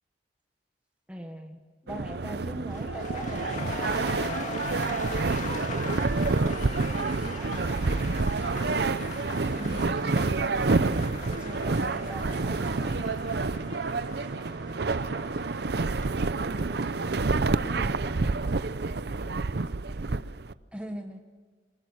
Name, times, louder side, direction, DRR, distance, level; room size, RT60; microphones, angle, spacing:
voice 1, 1.1-3.8 9.5-10.4 11.2-13.1 20.7-21.2, equal, 5° right, 3 dB, 1.3 m, -41 dB
sound 1, 1.9-20.5, right 3 dB, 60° right, 0.7 m, -28 dB
sound 2, 2.6-18.7 19.0-19.4, left 3 dB, 40° left, 2.5 m, -41 dB
voice 2, 5.7-8.5 14.4-15.3 16.2-18.5, right 1 dB, 30° right, 6 dB, 1.7 m, -45 dB
24.5 x 20.5 x 6.4 m, 1.5 s
head